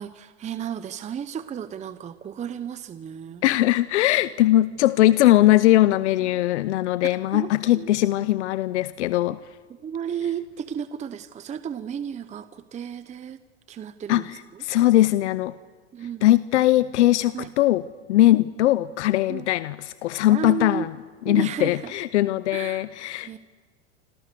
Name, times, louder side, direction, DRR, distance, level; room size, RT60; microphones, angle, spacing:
voice 1, 0.0-3.4 6.2-6.4 7.3-7.9 9.8-13.4 13.7-14.6 15.9-16.3 17.3-17.5 19.3-19.5 20.3-20.9 21.3-21.9 22.5-22.9 23.2-23.4, right 8 dB, 20° right, 12 dB, 0.8 m, -33 dB
voice 2, 3.4-9.4 14.1-15.5 16.2-17.8 18.1-20.9 21.3-23.4, left 15 dB, 85° left, 16 dB, 0.8 m, -20 dB
29.0 x 26.5 x 6.9 m, 1.5 s
supercardioid pair, 125°, 34 cm